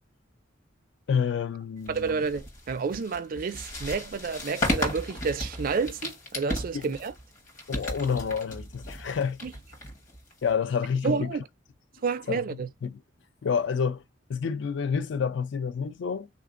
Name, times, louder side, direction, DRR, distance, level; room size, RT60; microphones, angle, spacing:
voice 1, 1.1-2.2 6.7-6.9 7.7-9.4 10.4-11.4 12.3-12.4 12.8-13.0 13.4-14.0 14.3-16.3, left 6 dB, 65° left, 0.4 m, -28 dB
sound 1, 1.9-10.5, left 1 dB, 40° left, 1.0 m, -35 dB
voice 2, 1.9-7.1 9.4-9.5 11.0-11.5 12.0-12.7, right 5 dB, 50° right, 0.4 m, -30 dB
3.5 x 2.5 x 2.4 m
head